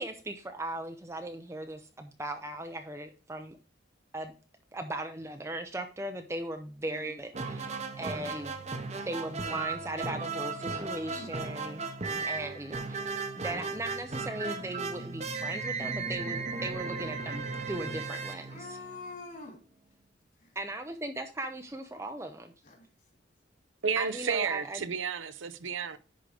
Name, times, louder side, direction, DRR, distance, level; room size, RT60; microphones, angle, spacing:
voice 1, 0.0-3.6 4.1-4.3 4.7-8.6 9.1-11.9 12.2-13.0 13.4-18.5 20.6-22.5 24.0-24.9, right 1 dB, 15° right, 0.5 m, -38 dB
voice 2, 6.8-7.2 9.1-9.3 11.0-11.4 12.3-12.5 18.5-19.6 20.4-20.6 22.6-22.9 24.1-24.2, left 3 dB, 45° left, 2.9 m, -46 dB
sound 1, 7.3-19.2, right 4 dB, 35° right, 0.8 m, -36 dB
voice 3, 23.8-26.0, right 6 dB, 85° right, 0.7 m, -31 dB
10.5 x 3.7 x 5.0 m
head